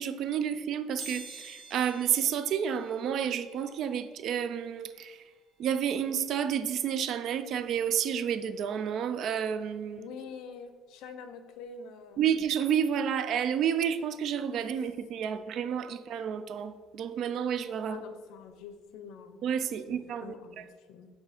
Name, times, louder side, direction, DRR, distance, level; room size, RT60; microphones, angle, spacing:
voice 1, 0.0-5.2 5.6-10.1 12.2-18.0 19.4-20.6, right 8 dB, 55° right, 0.3 m, -30 dB
sound 1, 1.0-11.7 12.1-12.2 13.4-13.5 13.8-15.8 16.2-18.8 19.2-19.4 19.7-19.8, right 3 dB, 35° right, 0.9 m, -53 dB
voice 2, 9.9-12.3 17.9-19.4 19.9-21.1, left 5 dB, 80° left, 0.6 m, -46 dB
7.3 x 2.7 x 4.9 m
cardioid pair, 145°, 0 cm